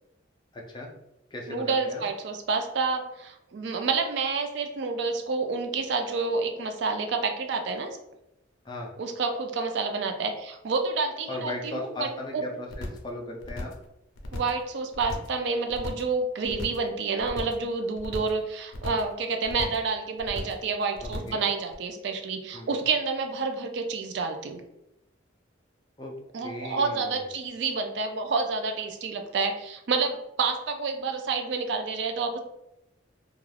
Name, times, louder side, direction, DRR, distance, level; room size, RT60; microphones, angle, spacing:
voice 1, 0.5-0.9 1.3-2.0 8.6-8.9 11.3-13.7 21.0-21.4 22.5-22.9 26.0-27.3, left 1 dB, 20° left, 0 dB, 0.4 m, -37 dB
voice 2, 1.5-8.0 9.0-12.4 14.3-24.6 26.3-32.4, right 4 dB, 60° right, 5 dB, 0.3 m, -29 dB
sound 1, 12.7-13.1 13.4-13.9 14.2-14.6 14.9-15.4 15.7-16.1 16.4-16.9 17.2-17.7 18.0-18.4 18.7-19.1 19.4-19.9 20.2-20.6 20.9-21.4 21.7-21.8, left 1 dB, 75° left, 0.5 m, -37 dB
2.3 x 2.3 x 3.2 m, 0.86 s
head